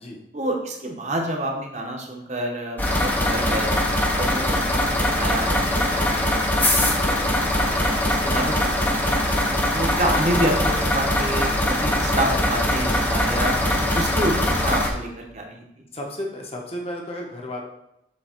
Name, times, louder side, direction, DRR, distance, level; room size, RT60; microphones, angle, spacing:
voice 1, 0.3-3.7 4.2-4.8 5.2-9.2 9.7-13.6 13.9-15.6, right 1 dB, 40° right, 1 dB, 1.0 m, -28 dB
sound 1, 2.8-14.9, left 1 dB, 10° left, 0.6 m, -22 dB
voice 2, 15.9-17.6, left 1 dB, 35° left, 0 dB, 1.0 m, -33 dB
7.4 x 3.1 x 4.4 m, 0.82 s
head